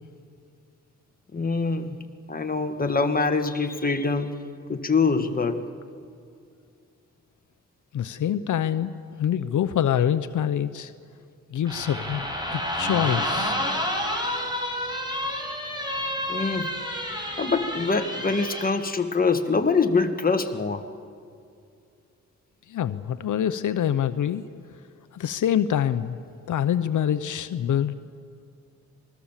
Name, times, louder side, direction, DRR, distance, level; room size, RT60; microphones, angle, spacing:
voice 1, 1.3-2.0 2.3-4.4 4.7-5.6 16.3-16.7 17.4-20.8, left 4 dB, 30° left, 6 dB, 1.6 m, -24 dB
voice 2, 7.9-10.9 11.5-12.2 12.5-13.6 22.7-24.6 25.1-26.2 26.5-27.9, left 9 dB, 80° left, 11 dB, 0.7 m, -25 dB
Heavy Door Squeak, 11.7-18.7, left 1 dB, 15° right, 5.0 m, -29 dB
26.5 x 20.5 x 7.4 m, 2.4 s
cardioid pair, 90°, 30 cm